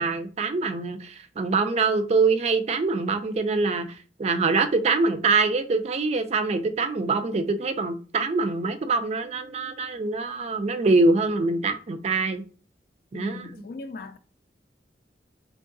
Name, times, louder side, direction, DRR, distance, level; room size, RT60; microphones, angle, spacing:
voice 1, 0.0-3.9 4.2-12.4 13.1-13.5, right 3 dB, 35° right, 0.3 m, -24 dB
voice 2, 13.1-14.2, left 3 dB, 55° left, 0.3 m, -39 dB
3.6 x 3.0 x 2.5 m
head